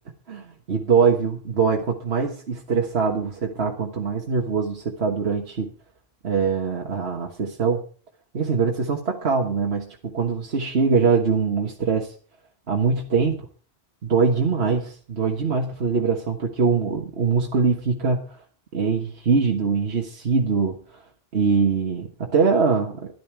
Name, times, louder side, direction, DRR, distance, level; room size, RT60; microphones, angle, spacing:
voice 1, 0.3-5.7 6.2-7.8 8.3-12.1 12.7-13.3 14.0-18.4 18.7-21.0 21.3-23.1, right 5 dB, 80° right, 1 dB, 1.7 m, -23 dB
12.5 x 12.0 x 4.6 m, 0.42 s
omnidirectional pair, 1.1 m